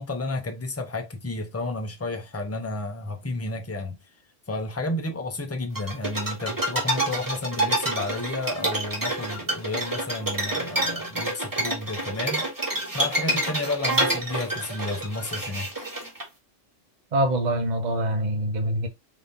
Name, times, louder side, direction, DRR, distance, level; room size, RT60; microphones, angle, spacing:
voice 1, 0.0-4.0 4.5-15.7, left 2 dB, 20° left, 0.5 m, -32 dB
sound 1, 5.8-16.2, right 1 dB, 15° right, 1.1 m, -28 dB
voice 2, 17.1-18.9, right 1 dB, 40° right, 0.8 m, -24 dB
3.9 x 2.7 x 3.6 m
omnidirectional pair, 1.3 m